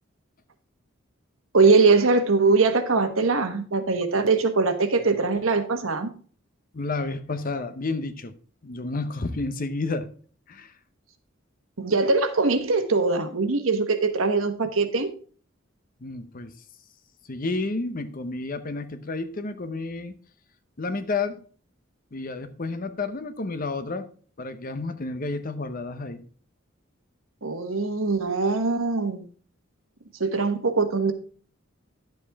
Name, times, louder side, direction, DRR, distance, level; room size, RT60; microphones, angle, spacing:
voice 1, 1.5-6.1 11.8-15.1 27.4-29.3 30.2-31.1, right 4 dB, 85° right, 1.2 m, -22 dB
voice 2, 6.7-8.3 8.6-10.1 10.5-10.7 16.0-16.5 17.3-20.1 20.8-21.4 22.1-24.1 24.4-26.2, left 3 dB, 45° left, 0.8 m, -31 dB
10.5 x 7.6 x 3.5 m
head